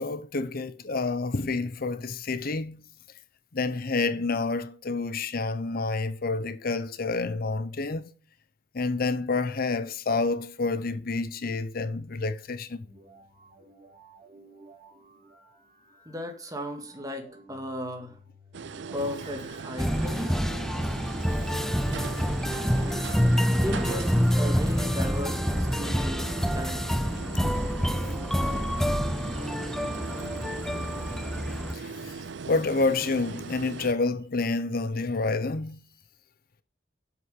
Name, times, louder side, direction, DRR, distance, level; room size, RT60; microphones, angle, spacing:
voice 1, 0.0-2.8 3.5-8.1 8.7-12.9 27.2-27.3 31.7-35.8, left 3 dB, 55° left, 0.7 m, -29 dB
sound 1, 12.8-26.9, right 2 dB, 45° right, 4.3 m, -52 dB
voice 2, 16.1-18.2 18.9-20.4 23.6-27.0, equal, 20° right, 2.1 m, -36 dB
sound 2, 18.5-33.9, right 5 dB, 90° right, 0.5 m, -40 dB
sound 3, 19.8-31.8, equal, 5° left, 0.5 m, -27 dB
8.3 x 8.0 x 5.2 m
head